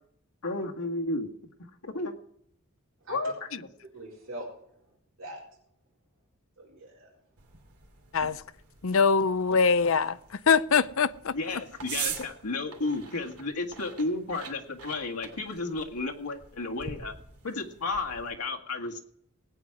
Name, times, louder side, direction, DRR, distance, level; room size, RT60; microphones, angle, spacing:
voice 1, 0.4-1.3 1.8-2.1 3.1-3.7 11.3-17.1 17.4-19.0, left 3 dB, 90° left, 1.9 m, -32 dB
voice 2, 3.9-5.4 6.6-7.1, right 1 dB, 60° right, 4.5 m, -43 dB
sound 1, 7.4-18.3, right 7 dB, 90° right, 2.8 m, -43 dB
voice 3, 8.8-11.3, left 5 dB, 60° left, 0.6 m, -23 dB
19.0 x 9.5 x 4.8 m
head